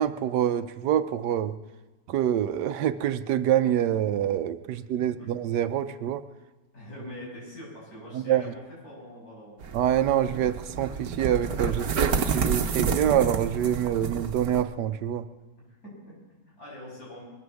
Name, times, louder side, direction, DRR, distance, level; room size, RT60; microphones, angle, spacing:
voice 1, 0.0-1.6 2.1-6.2 8.1-8.4 9.7-15.2, right 10 dB, 80° right, 11 dB, 1.2 m, -26 dB
voice 2, 6.7-9.6 15.7-17.2, left 1 dB, 60° left, -5 dB, 8.2 m, -43 dB
sound 1, 9.6-14.6, right 5 dB, 60° right, 1.4 m, -29 dB
21.5 x 9.7 x 7.0 m, 1.2 s
omnidirectional pair, 1.8 m